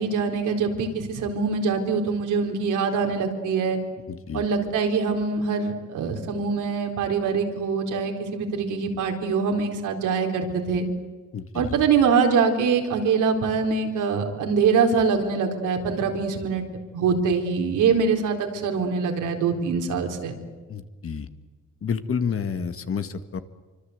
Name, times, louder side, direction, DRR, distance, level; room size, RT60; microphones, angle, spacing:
voice 1, 0.0-3.8 4.3-10.8 11.5-16.7 16.9-20.4, right 5 dB, 80° right, 3 dB, 4.3 m, -24 dB
voice 2, 4.1-4.4 11.3-11.7 20.7-21.3 21.8-23.4, left 6 dB, 45° left, 10 dB, 1.8 m, -29 dB
25.5 x 25.0 x 8.2 m, 1.4 s
cardioid pair, 90°, 30 cm